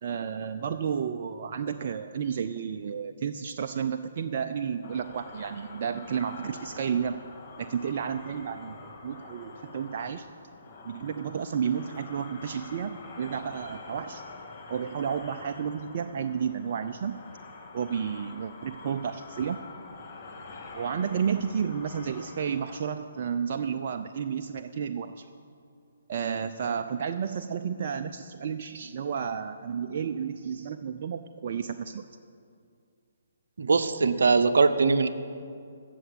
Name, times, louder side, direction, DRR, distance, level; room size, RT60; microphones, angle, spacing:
voice 1, 0.0-7.1 7.6-8.7 9.0-10.3 10.8-14.2 14.7-17.2 17.7-19.6 20.7-25.3 26.1-32.1, right 7 dB, 50° right, 7 dB, 0.5 m, -31 dB
sound 1, 4.8-22.8, left 3 dB, 35° left, 2.0 m, -46 dB
voice 2, 33.6-35.1, right 4 dB, 70° right, 10 dB, 0.8 m, -21 dB
15.0 x 6.9 x 8.1 m, 2.4 s
figure-of-eight pair, 140°, 0 cm